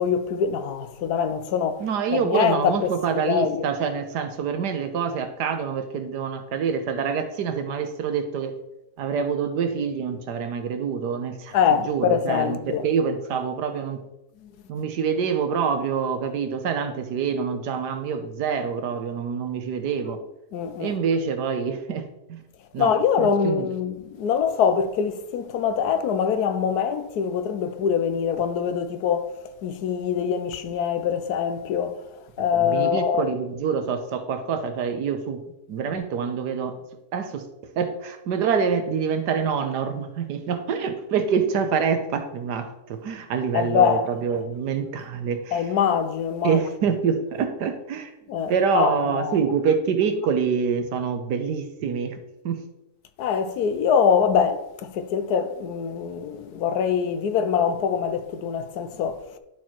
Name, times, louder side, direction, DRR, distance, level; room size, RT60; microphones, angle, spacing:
voice 1, 0.0-1.8 2.1-3.7 11.5-12.8 14.4-14.5 20.5-21.0 22.8-29.3 29.6-32.0 32.4-33.3 43.5-44.1 45.5-46.6 48.3-49.4 53.2-59.2, left 7 dB, 75° left, 1.2 m, -24 dB
voice 2, 1.8-8.5 9.0-14.0 14.7-20.2 20.8-22.0 22.3-22.4 22.7-23.7 32.5-35.4 35.7-36.8 37.1-37.4 37.8-45.6 46.4-48.1 48.5-52.2 52.4-52.6, right 6 dB, 90° right, 1.5 m, -26 dB
11.0 x 4.5 x 4.4 m
omnidirectional pair, 1.8 m